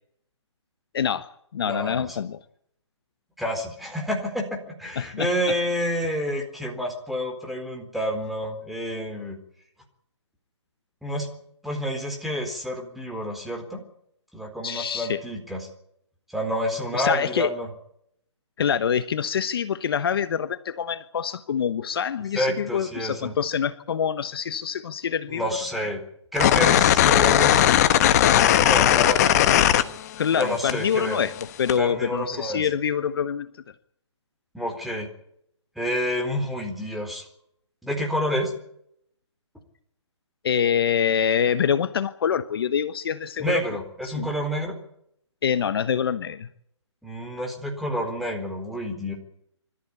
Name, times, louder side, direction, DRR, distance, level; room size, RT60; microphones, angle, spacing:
voice 1, 0.9-2.4 5.0-5.5 14.6-15.2 16.9-17.5 18.6-25.5 30.2-31.3 31.6-33.5 40.4-43.6 44.0-44.3 45.4-46.5, left 8 dB, 50° left, 12 dB, 1.2 m, -25 dB
voice 2, 1.6-2.2 3.4-9.4 11.0-11.3 11.6-13.8 14.3-15.7 16.3-17.7 22.3-23.3 25.3-26.0 26.3-27.6 28.2-29.3 30.3-31.2 31.8-32.7 34.5-35.1 35.8-37.3 37.8-38.5 43.4-44.7 47.0-49.1, equal, ahead, 2 dB, 4.1 m, -29 dB
sound 1, 26.4-30.4 30.7-31.8, left 11 dB, 35° left, 1.3 m, -18 dB
25.5 x 14.0 x 8.4 m, 0.72 s
hypercardioid pair, 150°, 15 cm